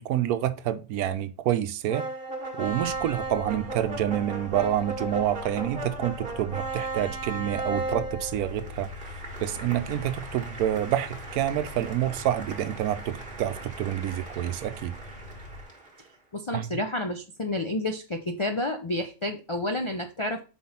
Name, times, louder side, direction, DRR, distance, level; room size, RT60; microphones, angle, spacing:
voice 1, 0.0-2.1 2.6-8.9 9.4-15.0 16.5-16.7, right 11 dB, 90° right, 1.1 m, -28 dB
sound 1, 1.9-16.1, right 2 dB, 40° right, 1.6 m, -37 dB
sound 2, 2.6-15.6, left 2 dB, 35° left, 1.8 m, -44 dB
voice 2, 16.3-20.4, left 1 dB, 55° left, 0.3 m, -30 dB
5.7 x 4.6 x 4.2 m
omnidirectional pair, 1.5 m